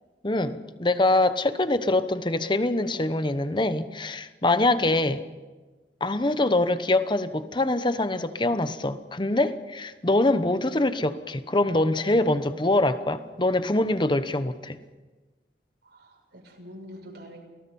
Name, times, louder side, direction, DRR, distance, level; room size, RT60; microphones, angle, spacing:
voice 1, 0.2-5.2 6.0-14.8, left 2 dB, 25° left, 11 dB, 1.0 m, -24 dB
voice 2, 15.9-17.4, equal, 70° right, 1 dB, 6.3 m, -45 dB
29.0 x 18.5 x 5.5 m, 1.3 s
head